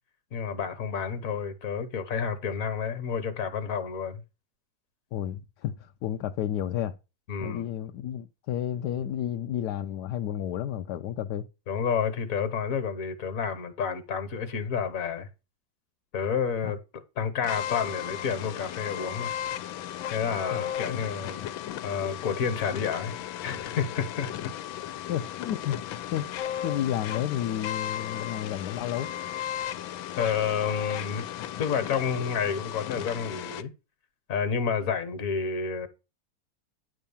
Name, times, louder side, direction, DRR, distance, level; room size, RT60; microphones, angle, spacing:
voice 1, 0.3-4.2 7.3-7.6 11.7-15.3 16.1-16.8 17.2-19.3 20.1-21.4 21.8-23.1 23.4-24.5 30.2-31.3 31.6-33.7 34.3-35.9, left 6 dB, 50° left, 1.5 m, -30 dB
voice 2, 5.1-7.0 7.4-11.5 16.6-16.7 20.5-21.0 25.1-25.8 26.1-26.3 26.6-29.1, left 11 dB, 70° left, 1.0 m, -31 dB
sound 1, 17.4-33.6, left 11 dB, 85° left, 1.5 m, -35 dB
10.0 x 3.7 x 7.0 m
omnidirectional pair, 2.1 m